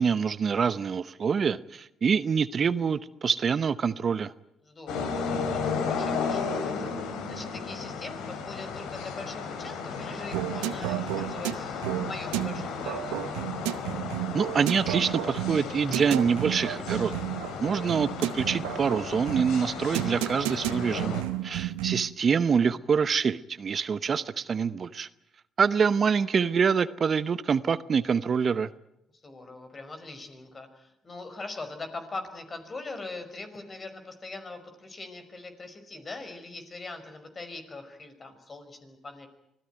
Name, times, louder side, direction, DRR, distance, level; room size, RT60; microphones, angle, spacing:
voice 1, 0.0-4.3 14.3-17.2 17.6-21.2 21.4-25.1 25.6-28.7, right 6 dB, 45° right, 0.8 m, -26 dB
voice 2, 4.6-13.3 21.4-21.7 29.2-39.3, left 3 dB, 35° left, 5.3 m, -42 dB
sound 1, 4.9-21.2, left 5 dB, 75° left, 3.3 m, -34 dB
sound 2, 10.3-22.1, right 16 dB, 85° right, 0.8 m, -32 dB
25.0 x 17.0 x 9.2 m
supercardioid pair, 60°, 0 cm